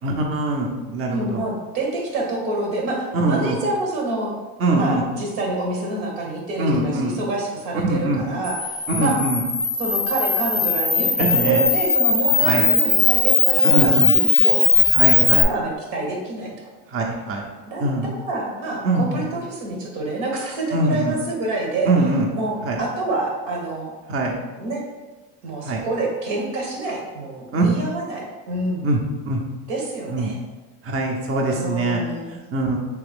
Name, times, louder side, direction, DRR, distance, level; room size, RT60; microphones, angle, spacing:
voice 1, 0.0-1.4 3.1-3.6 4.6-5.0 6.6-7.1 7.8-8.2 8.9-9.4 11.2-11.6 12.4-12.6 13.6-14.1 14.9-15.5 16.9-17.4 17.8-18.1 18.8-19.3 20.7-21.1 21.9-22.3 22.6-22.8 24.1-24.3 25.6-25.8 27.5-27.7 28.8-29.0 29.3-29.4 30.1-30.3 30.8-32.0 32.5-32.8, right 2 dB, 35° right, 0 dB, 0.7 m, -22 dB
voice 2, 1.1-4.4 4.7-9.2 9.8-14.6 15.2-16.7 17.6-21.9 22.3-23.9 24.6-24.8 25.4-28.9 29.7-30.4 31.5-32.2, right 2 dB, 85° right, -1 dB, 1.2 m, -27 dB
Camera, 8.4-15.4, left 4 dB, 15° left, 0.5 m, -19 dB
3.4 x 3.1 x 3.5 m, 1.2 s
supercardioid pair, 100°, 37 cm